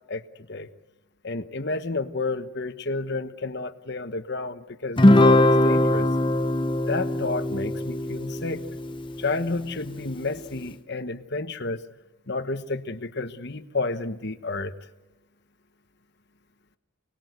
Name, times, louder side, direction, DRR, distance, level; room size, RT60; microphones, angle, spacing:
voice 1, 1.2-6.1 6.9-8.7 9.2-11.8 12.3-14.7, left 3 dB, 50° left, 8 dB, 1.2 m, -31 dB
Guitar, 5.0-9.6, left 1 dB, 25° left, 0.8 m, -21 dB
29.5 x 20.0 x 8.1 m, 0.97 s
head